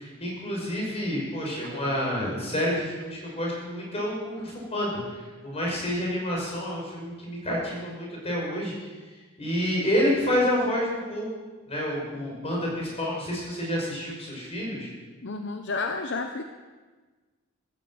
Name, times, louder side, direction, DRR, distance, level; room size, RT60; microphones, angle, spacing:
voice 1, 0.0-5.2 5.4-8.9 9.4-11.3 11.7-14.9, equal, 30° left, -3 dB, 5.8 m, -29 dB
voice 2, 15.2-16.4, left 3 dB, 55° left, 6 dB, 0.8 m, -31 dB
15.0 x 9.6 x 7.9 m, 1.4 s
head